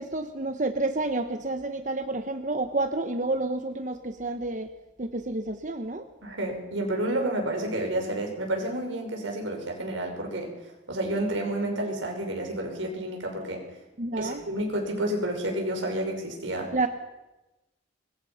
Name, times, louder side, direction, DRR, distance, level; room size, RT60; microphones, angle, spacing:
voice 1, 0.0-4.7 5.0-6.1 14.0-14.4 16.7-16.9, right 2 dB, 40° right, 7 dB, 1.0 m, -29 dB
voice 2, 6.2-10.5 10.9-13.6 14.2-16.8, right 1 dB, 80° right, 2 dB, 6.0 m, -30 dB
25.0 x 22.0 x 5.8 m, 1.0 s
head